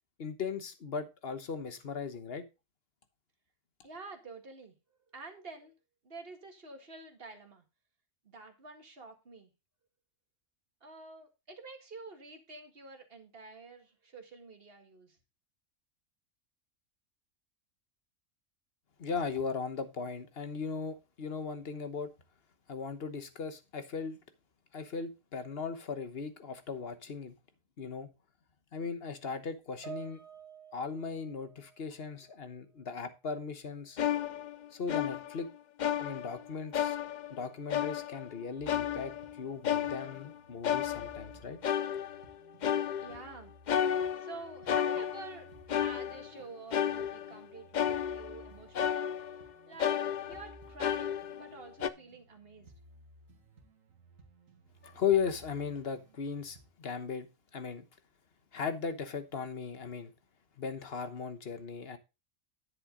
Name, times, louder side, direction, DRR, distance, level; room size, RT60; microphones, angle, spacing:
voice 1, 0.2-2.4 19.0-22.1 22.7-24.2 24.7-27.3 27.8-28.1 28.7-30.2 30.7-34.0 34.7-35.5 36.0-37.0 37.3-41.6 54.8-57.3 57.5-57.9 58.5-60.1 60.6-62.0, left 6 dB, 45° left, 1.3 m, -37 dB
voice 2, 3.8-4.7 5.1-5.7 6.0-7.6 8.2-9.5 10.8-15.2 43.0-43.5 44.2-49.1 49.7-52.7, right 3 dB, 40° right, 2.0 m, -49 dB
Piano, 29.8-32.5 32.7-33.1 33.9-34.0, right 8 dB, 20° right, 3.7 m, -50 dB
sound 1, 34.0-35.5 35.8-36.5 36.7-37.4 37.7-38.3 38.7-40.3 40.6-41.4 41.6-42.3 42.6-43.3 43.7-45.4 45.7-46.4 46.7-47.4 47.7-48.5 48.7-49.5 49.8-51.5 51.8-51.9, left 9 dB, 75° left, 0.4 m, -33 dB
sound 2, 38.6-56.7, right 3 dB, 65° right, 2.1 m, -59 dB
10.0 x 7.9 x 3.8 m
omnidirectional pair, 1.5 m